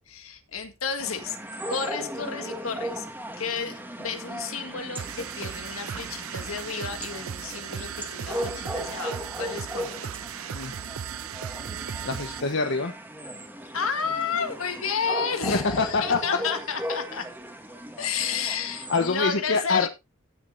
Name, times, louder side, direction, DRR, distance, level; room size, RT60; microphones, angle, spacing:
voice 1, 0.1-1.4 1.7-3.1 3.4-10.1 13.7-17.3 18.0-19.9, left 6 dB, 75° left, 1.9 m, -31 dB
sound 1, 1.0-19.2, equal, 10° right, 2.1 m, -37 dB
sound 2, 5.0-12.5, right 8 dB, 80° right, 0.5 m, -37 dB
voice 2, 12.0-13.0 15.5-16.2 18.9-19.9, left 4 dB, 60° left, 1.2 m, -25 dB
16.0 x 7.6 x 2.7 m
head